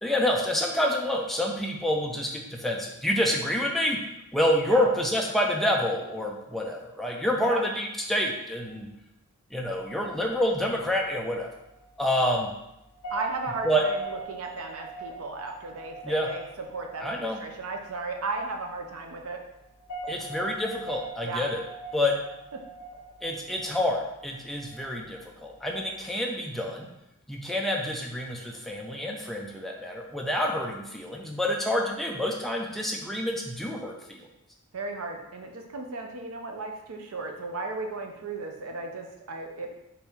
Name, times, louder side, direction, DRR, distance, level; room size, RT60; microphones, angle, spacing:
voice 1, 0.0-4.0 4.3-8.9 9.5-11.5 12.0-12.5 13.6-13.8 16.0-16.3 17.0-17.4 20.1-21.6 21.9-22.1 23.2-26.9 27.3-34.3, left 1 dB, ahead, -1 dB, 0.5 m, -28 dB
sound 1, 9.6-26.1, right 2 dB, 70° left, 0.9 m, -44 dB
voice 2, 13.1-16.4 16.7-19.4 21.2-21.5 34.7-39.7, right 3 dB, 65° right, 3 dB, 0.6 m, -35 dB
4.4 x 2.7 x 3.4 m, 0.87 s
head